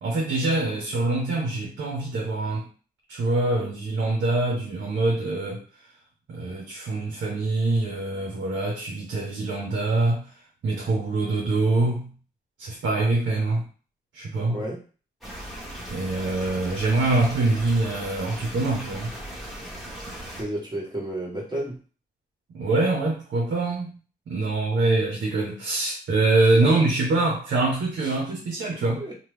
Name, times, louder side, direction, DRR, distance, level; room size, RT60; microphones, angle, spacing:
voice 1, 0.0-2.7 3.1-5.6 6.3-10.3 10.6-12.1 12.6-13.6 14.1-14.6 15.9-19.1 22.5-24.0 24.3-29.0, right 2 dB, 80° right, -2 dB, 0.8 m, -24 dB
voice 2, 14.5-14.8 20.4-21.7 26.6-26.7 28.0-28.1 28.9-29.1, right 1 dB, 20° right, -3 dB, 1.5 m, -32 dB
sound 1, 15.2-20.4, right 1 dB, ahead, 1.3 m, -38 dB
2.9 x 2.3 x 3.3 m, 0.38 s
cardioid pair, 55°, 19 cm